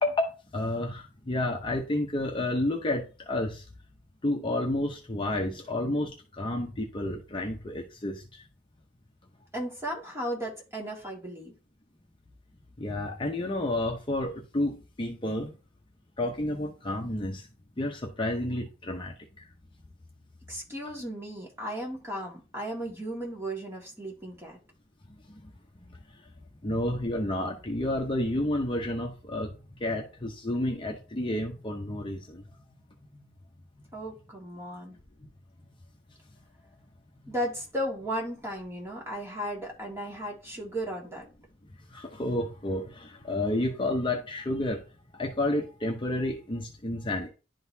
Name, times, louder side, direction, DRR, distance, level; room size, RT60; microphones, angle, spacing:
voice 1, 0.0-3.6 4.2-8.4 12.8-15.5 16.2-17.5 17.8-19.5 25.3-25.4 26.6-32.4 33.1-33.2 37.2-37.3 41.9-44.8 45.1-47.3, left 1 dB, 25° left, 0.7 m, -30 dB
voice 2, 9.5-11.5 20.5-24.6 33.9-35.0 37.3-41.2, equal, 15° right, 1.9 m, -35 dB
11.0 x 3.9 x 2.7 m
head